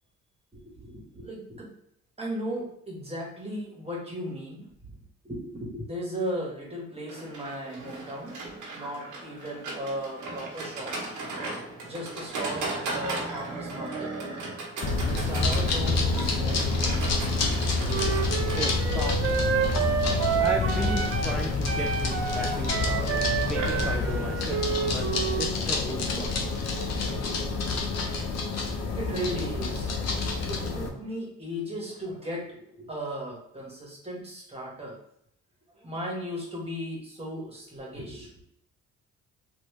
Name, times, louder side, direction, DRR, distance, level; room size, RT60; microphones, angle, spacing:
voice 1, 0.5-1.7 2.2-4.9 5.2-8.3 8.7-11.0 11.8-14.1 14.8-17.1 28.9-29.9 30.5-35.0 35.7-38.3, equal, 20° right, -2 dB, 1.4 m, -36 dB
Livestock farm animals working animals, 7.1-25.1, right 2 dB, 80° right, 1.0 m, -38 dB
sound 1, 14.8-30.9, left 3 dB, 60° left, 0.7 m, -28 dB
Wind instrument woodwind instrument, 17.9-21.4 21.6-25.5, right 7 dB, 50° right, 0.6 m, -29 dB
voice 2, 18.5-19.3 20.4-24.6 24.9-25.0 25.4-26.7, equal, ahead, -1 dB, 0.4 m, -36 dB
3.2 x 2.6 x 3.2 m, 0.72 s
cardioid pair, 90°, 30 cm